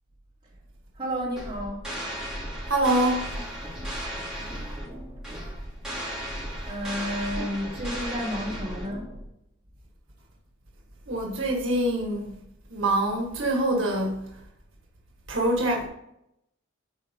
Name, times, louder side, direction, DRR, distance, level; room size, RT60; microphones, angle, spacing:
voice 1, 1.0-1.9 6.7-9.1, equal, 25° right, 3.5 m, -31 dB
sound 1, 1.4-9.2, equal, 5° right, 2.6 m, -35 dB
voice 2, 2.7-3.2 11.1-12.3 12.7-14.2 15.3-15.9, right 1 dB, 75° right, 1.7 m, -25 dB
12.0 x 4.5 x 3.7 m
head